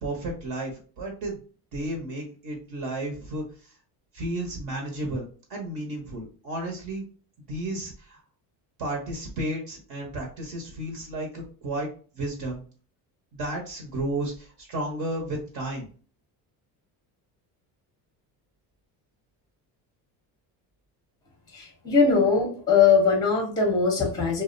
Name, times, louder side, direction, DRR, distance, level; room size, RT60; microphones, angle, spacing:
voice 1, 0.0-1.4 1.7-3.7 4.1-5.2 5.5-7.0 7.5-8.2 8.8-11.9 12.1-12.6 13.3-15.9, right 1 dB, 55° right, 1 dB, 0.9 m, -32 dB
voice 2, 21.5-24.4, left 5 dB, 10° left, 1 dB, 0.6 m, -21 dB
2.4 x 2.0 x 2.5 m, 0.39 s
cardioid pair, 110°, 44 cm